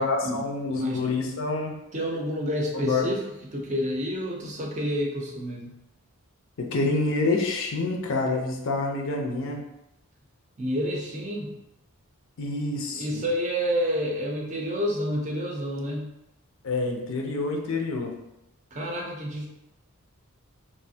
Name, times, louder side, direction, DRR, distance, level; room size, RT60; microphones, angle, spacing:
voice 1, 0.0-1.7 2.8-3.1 6.6-9.6 12.4-13.1 16.6-18.1, left 3 dB, 60° left, 1 dB, 0.5 m, -27 dB
voice 2, 1.9-3.2 3.5-5.7 10.6-11.5 12.9-16.1 18.7-19.5, equal, 35° right, -1 dB, 0.5 m, -29 dB
3.2 x 2.5 x 2.7 m, 0.87 s
head